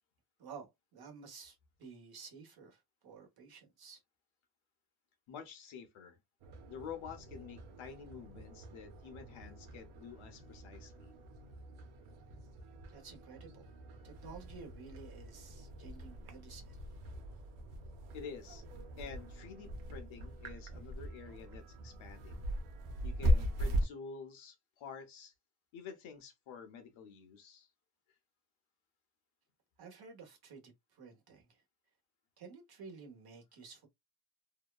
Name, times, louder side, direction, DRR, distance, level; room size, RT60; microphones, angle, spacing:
voice 1, 0.4-4.0 12.9-13.7 14.0-16.8 29.8-31.6 32.4-33.9, right 5 dB, 50° right, 1.1 m, -52 dB
voice 2, 5.3-6.2 6.7-11.1 18.1-18.6 19.0-22.5 23.0-25.3 25.7-27.7, left 6 dB, 70° left, 0.9 m, -49 dB
sound 1, 6.4-23.9, equal, 90° right, 0.8 m, -40 dB
2.8 x 2.2 x 2.2 m
cardioid pair, 155°, 48 cm